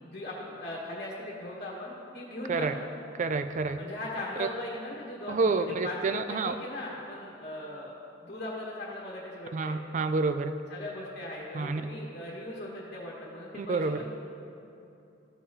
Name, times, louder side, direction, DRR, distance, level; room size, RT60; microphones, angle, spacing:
voice 1, 0.0-2.8 3.8-7.9 8.2-9.8 10.7-14.1, left 1 dB, 45° left, -6 dB, 1.5 m, -39 dB
voice 2, 3.2-3.8 4.4-4.5 5.3-6.5 9.5-10.5 11.5-11.8 13.5-14.0, right 4 dB, 35° right, 9 dB, 0.3 m, -28 dB
14.5 x 7.4 x 2.8 m, 2.8 s
head